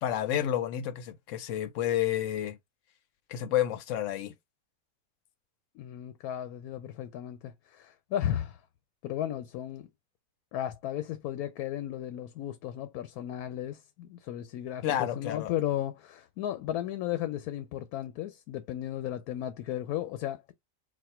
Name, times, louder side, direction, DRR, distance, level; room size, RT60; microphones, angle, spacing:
voice 1, 0.0-2.6 3.3-4.3 14.8-15.5, left 11 dB, 65° left, 0.9 m, -30 dB
voice 2, 5.8-8.6 9.0-9.9 10.5-20.5, left 12 dB, 90° left, 1.1 m, -35 dB
4.3 x 2.3 x 4.3 m
omnidirectional pair, 1.5 m